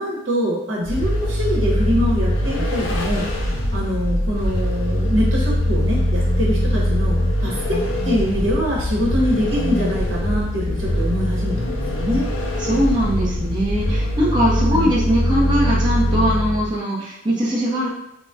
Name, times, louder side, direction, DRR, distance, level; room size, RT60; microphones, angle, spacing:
voice 1, 0.0-3.3 3.7-12.3 14.7-14.9, equal, 75° right, -3 dB, 0.9 m, -24 dB
Vehicle, 0.8-16.8, left 1 dB, 75° left, 0.5 m, -22 dB
voice 2, 12.6-17.9, equal, 25° right, -7 dB, 0.7 m, -21 dB
3.9 x 2.0 x 2.4 m, 0.79 s
head